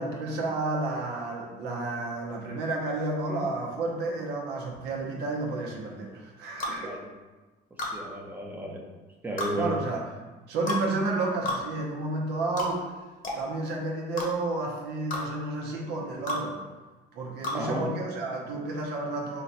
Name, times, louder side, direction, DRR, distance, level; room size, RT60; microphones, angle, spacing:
voice 1, 0.0-7.0 9.6-10.0 10.5-12.9 13.3-16.6 17.1-19.4, right 2 dB, 80° right, -1 dB, 0.8 m, -31 dB
sound 1, 6.6-6.8 7.8-8.0 9.4-9.5 10.7-10.8 11.4-11.6 12.6-12.7 13.2-13.4 14.2-14.3 15.1-15.2 16.3-16.4 17.4-17.6, left 2 dB, 55° left, 0.9 m, -30 dB
voice 2, 6.8-7.1 7.9-8.8 9.2-9.7 17.5-17.9, equal, 10° right, -2 dB, 0.6 m, -33 dB
3.9 x 2.2 x 3.9 m, 1.2 s
cardioid pair, 110°, 17 cm